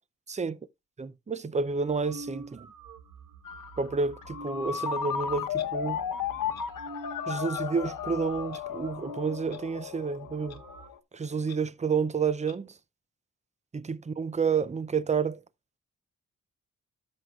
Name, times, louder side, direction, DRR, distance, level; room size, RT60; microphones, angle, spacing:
voice 1, 0.3-0.6 1.0-2.7 3.8-6.0 7.3-10.6 11.1-12.7 13.7-15.4, right 5 dB, 20° right, 0.4 m, -30 dB
sound 1, 1.6-9.5 9.8-9.9 10.1-10.9, right 2 dB, 80° right, 1.0 m, -47 dB
Ringtone, 3.5-10.9, left 7 dB, 85° left, 1.0 m, -34 dB
Clock, 5.5-5.7 6.5-6.7 7.5-7.6 8.5-8.6 9.5-9.6 10.5-10.6 11.5-11.6 12.5-12.6, left 7 dB, 55° left, 1.0 m, -48 dB
13.5 x 6.2 x 2.3 m
wide cardioid pair, 100°, 31 cm